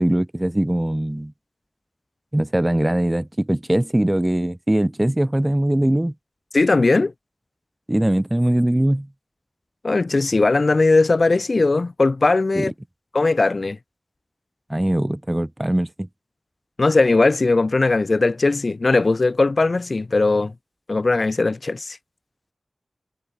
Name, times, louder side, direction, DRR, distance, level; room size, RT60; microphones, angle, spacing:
voice 1, 0.0-1.3 2.3-6.1 7.9-9.1 12.5-12.7 14.7-16.1, right 1 dB, 15° right, 3.3 m, -21 dB
voice 2, 6.5-7.1 9.8-12.7 13.1-13.8 16.8-20.5 20.9-22.0, left 3 dB, 55° left, 1.7 m, -19 dB
wide cardioid pair, 55°, 0 cm